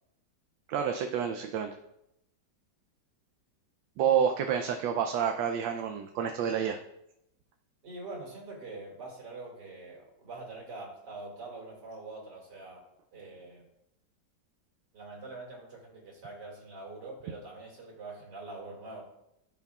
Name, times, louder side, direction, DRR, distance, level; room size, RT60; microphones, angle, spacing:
voice 1, 0.7-1.7 4.0-6.8, right 8 dB, 75° right, 5 dB, 1.2 m, -29 dB
voice 2, 7.8-12.8 13.1-13.7 14.9-19.0, right 2 dB, 60° right, -2 dB, 2.8 m, -44 dB
15.0 x 5.7 x 2.4 m, 0.83 s
omnidirectional pair, 2.0 m